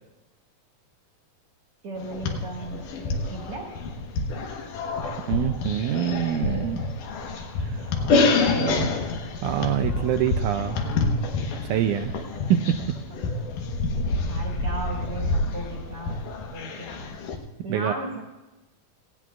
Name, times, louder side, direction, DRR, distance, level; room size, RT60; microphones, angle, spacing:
voice 1, 1.8-3.7 8.2-8.9 13.1-13.2 14.3-16.2 16.5-17.1 17.6-18.2, right 1 dB, 50° right, -1 dB, 2.2 m, -35 dB
sound 1, 2.0-17.4, left 3 dB, 70° left, 2.6 m, -27 dB
voice 2, 5.3-6.8 7.6-7.9 8.6-8.9 9.4-10.8 11.6-12.1 12.5-12.8 17.7-18.0, right 10 dB, 85° right, 7 dB, 1.8 m, -25 dB
18.5 x 17.0 x 2.4 m, 1.1 s
omnidirectional pair, 4.1 m